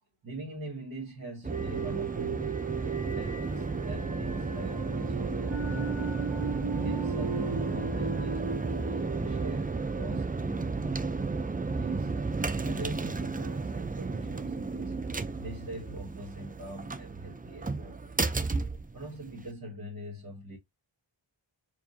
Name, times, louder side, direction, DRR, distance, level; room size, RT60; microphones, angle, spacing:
voice 1, 0.2-2.5 3.1-6.1 6.7-11.3 11.7-12.1 12.6-14.9 15.4-18.2 18.9-20.6, right 1 dB, 45° right, 1.6 m, -43 dB
sound 1, 1.4-19.5, right 3 dB, 20° right, 0.5 m, -33 dB
sound 2, 1.5-10.7, right 6 dB, 65° right, 2.2 m, -37 dB
4.7 x 2.6 x 2.7 m
cardioid pair, 50°, 48 cm